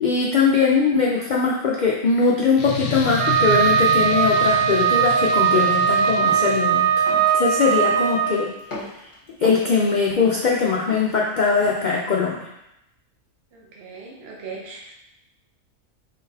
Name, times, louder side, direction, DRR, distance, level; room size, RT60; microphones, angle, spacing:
voice 1, 0.0-6.9 7.3-8.5 9.4-12.5, left 4 dB, 85° left, -3 dB, 0.4 m, -21 dB
sound 1, 2.6-7.0, left 5 dB, 60° left, 0.8 m, -31 dB
Wind instrument woodwind instrument, 3.2-8.3, right 7 dB, 85° right, 1.1 m, -19 dB
sound 2, 6.3-6.6 7.1-7.3 7.8-8.2 8.6-9.7 10.1-11.2 11.6-11.9, left 2 dB, 40° left, 1.3 m, -36 dB
voice 2, 13.5-14.9, right 4 dB, 55° right, -2 dB, 0.8 m, -38 dB
4.0 x 3.7 x 2.7 m, 0.85 s
omnidirectional pair, 1.4 m